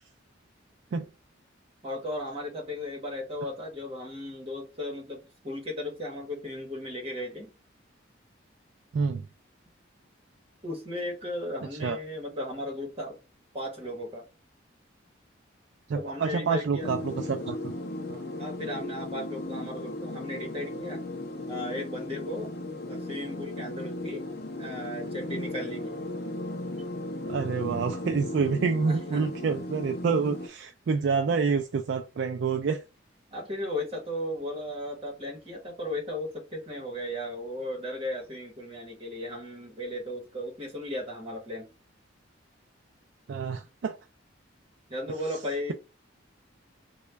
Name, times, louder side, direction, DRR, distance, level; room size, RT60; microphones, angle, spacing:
voice 1, 1.8-7.5 10.6-13.2 13.5-14.2 15.9-16.9 18.4-21.0 21.5-22.5 22.9-24.3 24.6-26.0 28.8-29.3 33.3-41.7 44.9-45.7, left 1 dB, 30° right, 1.2 m, -36 dB
voice 2, 8.9-9.3 11.8-12.0 15.9-17.7 18.1-18.2 27.3-32.8 43.3-44.0, right 5 dB, 60° right, 0.3 m, -28 dB
sound 1, 16.8-30.5, left 1 dB, 55° left, 0.5 m, -36 dB
3.0 x 2.2 x 3.3 m
head